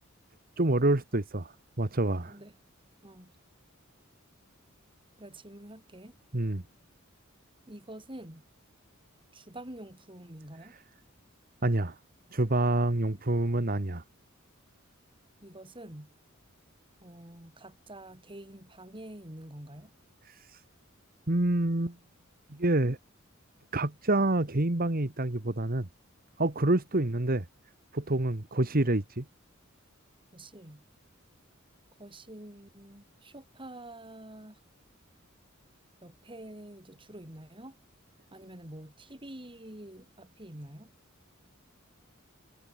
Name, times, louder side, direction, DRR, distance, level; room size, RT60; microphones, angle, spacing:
voice 1, 0.6-2.4 6.3-6.6 11.6-12.0 12.3-14.0 20.3-20.6 21.3-22.0 22.5-23.0 23.7-25.9 26.4-27.5 27.9-29.3, right 2 dB, 45° right, 1.7 m, -27 dB
voice 2, 5.2-6.2 7.7-8.5 9.3-10.8 15.4-16.1 17.0-19.9 30.3-30.8 32.0-34.6 36.0-37.8 38.3-40.9, right 1 dB, 25° right, 5.4 m, -47 dB
head